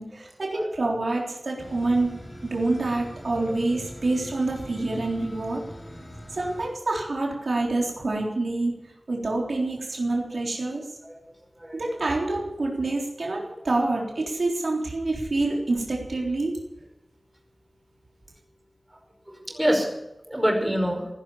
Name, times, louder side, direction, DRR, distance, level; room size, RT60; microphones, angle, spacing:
voice 1, 0.0-2.1 2.4-5.6 6.3-10.8 11.7-16.6, right 2 dB, 85° right, -1 dB, 3.7 m, -27 dB
sound 1, 1.6-6.7, left 1 dB, 35° left, 5.2 m, -41 dB
voice 2, 18.9-19.9 20.3-21.1, equal, 15° right, 2 dB, 5.0 m, -26 dB
16.5 x 11.0 x 7.2 m, 0.94 s
wide cardioid pair, 55°, 0 cm